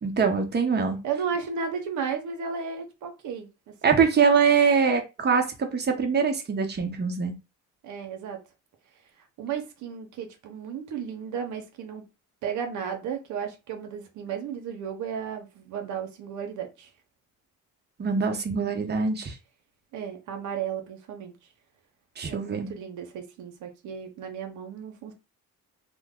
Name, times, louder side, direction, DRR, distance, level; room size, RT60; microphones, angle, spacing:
voice 1, 0.0-1.0 3.8-7.3 18.0-19.4 22.2-22.7, right 5 dB, 35° right, 0.9 m, -23 dB
voice 2, 1.0-3.5 3.8-3.9 7.8-8.4 9.4-12.0 12.4-16.9 19.9-21.3 22.3-25.1, right 7 dB, 80° right, 0.8 m, -34 dB
3.0 x 2.1 x 3.6 m
cardioid pair, 90°, 30 cm